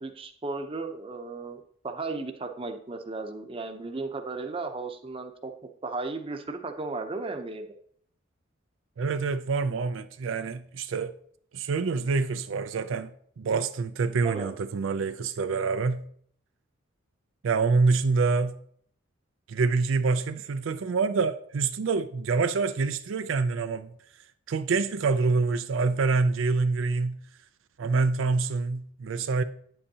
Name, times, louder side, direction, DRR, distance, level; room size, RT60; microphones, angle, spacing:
voice 1, 0.0-5.5 5.8-7.7 14.2-14.5, right 3 dB, 30° right, 0.7 m, -35 dB
voice 2, 9.0-11.1 11.5-13.1 13.4-16.0 17.4-18.6 19.5-23.9 24.5-27.2 27.8-29.4, right 4 dB, 75° right, 0.4 m, -26 dB
9.7 x 7.8 x 2.8 m
head